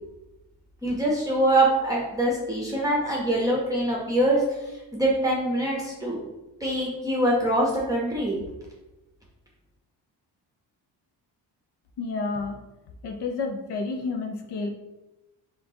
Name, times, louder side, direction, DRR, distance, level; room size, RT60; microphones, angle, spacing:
voice 1, 0.8-6.2 6.6-8.4, right 1 dB, 10° right, -4 dB, 0.9 m, -24 dB
voice 2, 12.0-12.6 13.0-14.7, left 4 dB, 70° left, 5 dB, 0.8 m, -30 dB
4.4 x 4.0 x 2.9 m, 1.0 s
cardioid pair, 115°, 43 cm